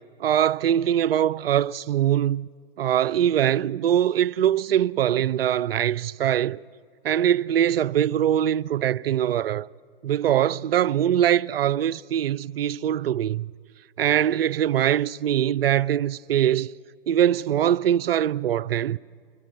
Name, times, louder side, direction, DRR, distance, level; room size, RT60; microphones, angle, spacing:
voice 1, 0.2-2.5 2.8-6.6 7.0-9.7 10.0-13.5 14.0-16.7 17.1-19.0, right 10 dB, 70° right, 0.5 m, -22 dB
23.0 x 15.5 x 7.7 m
figure-of-eight pair, 115°, 30 cm